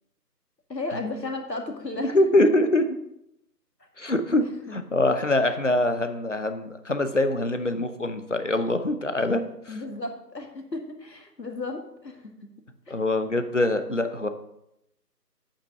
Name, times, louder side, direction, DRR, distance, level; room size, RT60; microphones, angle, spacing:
voice 1, 0.7-2.2 4.4-4.7 9.7-12.3 12.9-13.0, left 2 dB, 80° left, 3 dB, 2.0 m, -34 dB
voice 2, 2.0-2.8 4.0-4.4 4.7-9.4 12.9-14.3, left 1 dB, 50° left, 8 dB, 0.7 m, -23 dB
8.6 x 5.5 x 5.6 m, 0.83 s
figure-of-eight pair, 170°, 49 cm